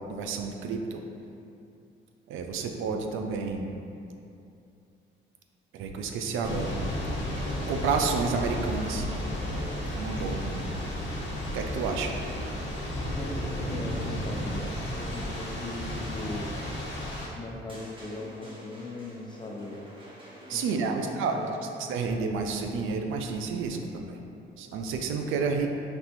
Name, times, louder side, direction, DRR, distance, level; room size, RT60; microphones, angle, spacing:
voice 1, 0.1-1.0 2.3-3.7 5.7-6.7 7.7-9.1 9.9-10.7 11.5-12.1 20.5-21.4 21.8-24.2 24.6-25.7, right 5 dB, 85° right, 4 dB, 0.4 m, -30 dB
Thunder / Rain, 6.4-17.3, left 1 dB, 65° left, 1.0 m, -33 dB
voice 2, 13.1-16.5 17.2-19.8 20.5-21.4, left 2 dB, 25° left, -1 dB, 0.6 m, -39 dB
sound 1, 17.7-21.9, equal, 25° right, 0.9 m, -49 dB
4.1 x 3.3 x 3.0 m, 2.7 s
cardioid pair, 90°, 20 cm